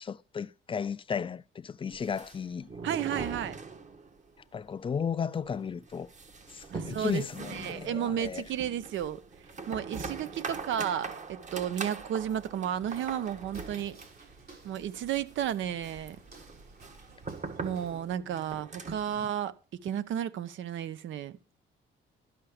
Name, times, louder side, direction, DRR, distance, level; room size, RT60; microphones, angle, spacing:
voice 1, 0.0-2.7 4.5-6.1 6.5-8.5 19.2-19.3, left 6 dB, 25° left, 0.4 m, -34 dB
sound 1, 1.9-4.3 4.5-4.6 5.0-5.1 5.5-19.1, right 4 dB, 40° right, 1.3 m, -42 dB
voice 2, 2.8-3.6 6.7-7.2 7.5-9.2 9.7-14.0 14.6-16.2 17.6-19.5 19.8-21.3, right 10 dB, 75° right, 0.8 m, -33 dB
Walk footsteps, 12.9-18.2, right 4 dB, 55° right, 5.7 m, -56 dB
12.0 x 5.8 x 4.9 m
cardioid pair, 90°, 20 cm